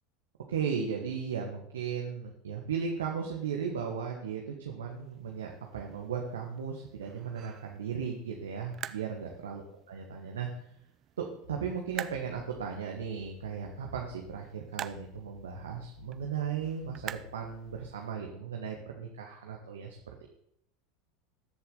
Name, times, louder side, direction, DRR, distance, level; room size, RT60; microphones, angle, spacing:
voice 1, 0.5-10.5 11.2-20.0 20.2-20.3, right 7 dB, 70° right, 2 dB, 1.4 m, -36 dB
sound 1, 4.9-18.1, right 10 dB, 35° right, 0.5 m, -48 dB
sound 2, 11.5-14.5 14.9-17.9, left 7 dB, 75° left, 0.7 m, -53 dB
20.5 x 7.2 x 4.0 m, 0.73 s
figure-of-eight pair, 80°, 0 cm